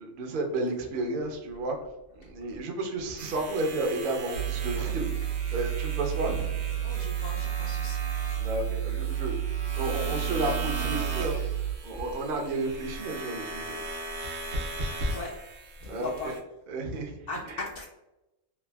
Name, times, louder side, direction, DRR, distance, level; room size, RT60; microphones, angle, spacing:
voice 1, 0.0-1.8 2.2-5.1 5.5-6.4 8.4-11.4 11.8-13.8 15.9-16.3 16.7-17.6, right 2 dB, 55° right, 2 dB, 0.6 m, -32 dB
sound 1, 3.2-16.4, right 1 dB, 70° right, 1.0 m, -38 dB
sound 2, 4.3-11.7, right 10 dB, 85° left, 1.2 m, -31 dB
voice 2, 6.8-8.0 15.0-15.3 15.8-16.3 17.3-17.9, left 2 dB, 65° left, -3 dB, 0.8 m, -38 dB
3.3 x 2.4 x 2.2 m, 0.94 s
omnidirectional pair, 1.4 m